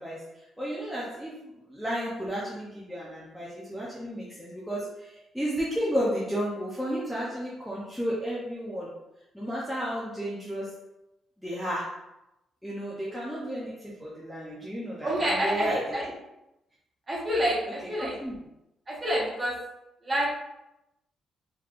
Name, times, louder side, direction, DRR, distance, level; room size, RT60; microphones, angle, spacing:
voice 1, 0.0-8.9 9.3-10.8 11.4-12.0 12.6-16.1 18.0-18.4, equal, ahead, -7 dB, 0.5 m, -33 dB
voice 2, 15.0-16.0 17.1-18.2 18.9-19.6 20.0-20.3, equal, 20° right, -4 dB, 0.9 m, -28 dB
3.9 x 3.0 x 2.4 m, 0.90 s
cardioid pair, 175°, 0 cm